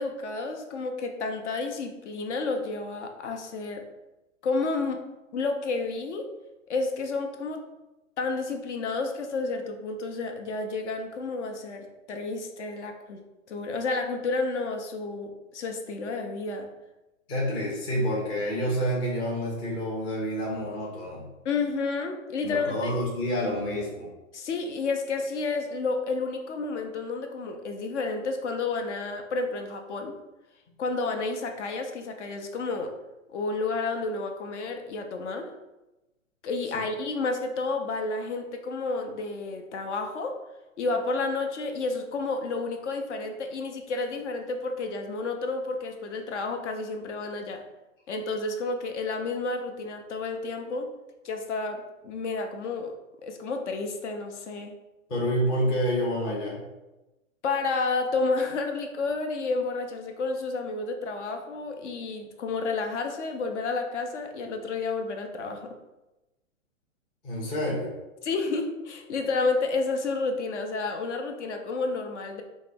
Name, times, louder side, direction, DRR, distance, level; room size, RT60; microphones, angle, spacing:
voice 1, 0.0-3.8 4.4-5.0 5.3-6.3 6.7-7.6 8.2-16.7 21.4-22.9 24.3-30.2 30.8-32.9 33.3-35.5 36.4-40.4 40.8-47.6 48.1-50.9 51.2-52.9 53.2-54.7 57.4-65.7 68.2-72.4, left 3 dB, 60° left, 5 dB, 0.6 m, -30 dB
voice 2, 17.3-21.3 22.4-24.1 55.1-56.6 67.2-67.9, equal, 10° left, -3 dB, 0.4 m, -28 dB
3.9 x 2.1 x 3.5 m, 1.0 s
figure-of-eight pair, 115°, 40 cm